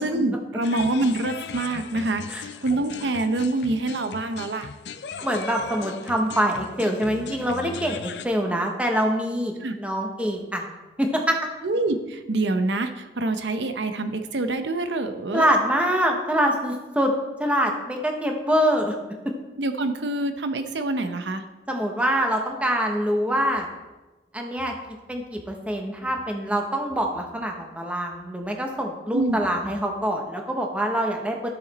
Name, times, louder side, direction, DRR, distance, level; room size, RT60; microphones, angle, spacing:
voice 1, 0.0-4.7 9.6-9.8 11.6-15.5 19.6-21.4 29.1-29.4, right 2 dB, 80° right, 8 dB, 0.7 m, -26 dB
sound 1, 0.6-8.3, left 6 dB, 70° left, 0.5 m, -38 dB
voice 2, 5.2-10.7 11.0-11.4 15.3-17.1 17.4-19.0 21.7-23.7 24.3-24.7 25.1-31.5, equal, 5° right, 2 dB, 1.0 m, -25 dB
13.0 x 6.6 x 4.2 m, 1.2 s
head